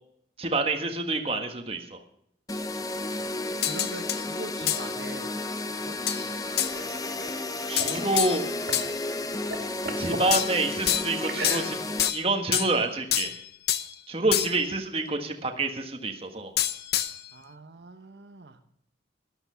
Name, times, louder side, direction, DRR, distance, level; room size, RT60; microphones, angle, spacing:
voice 1, 0.4-2.0 7.7-8.4 10.0-13.3 14.1-16.5, right 2 dB, 30° right, 4 dB, 1.6 m, -28 dB
sound 1, 2.5-12.1, left 2 dB, 20° left, 0.7 m, -33 dB
voice 2, 3.3-5.3 5.7-6.0 17.3-18.6, right 3 dB, 75° right, 7 dB, 0.9 m, -42 dB
sound 2, 3.6-4.2 4.7-4.9 6.1-6.2 6.6-6.7 7.8-8.9 10.3-11.2 11.4-12.8 13.1-13.9 14.3-14.7 16.6-17.3, left 11 dB, 60° left, 0.8 m, -27 dB
sound 3, 5.6-8.9 9.3-10.3 11.2-12.1, right 2 dB, 60° right, 2.5 m, -38 dB
13.0 x 11.5 x 5.7 m, 0.71 s
head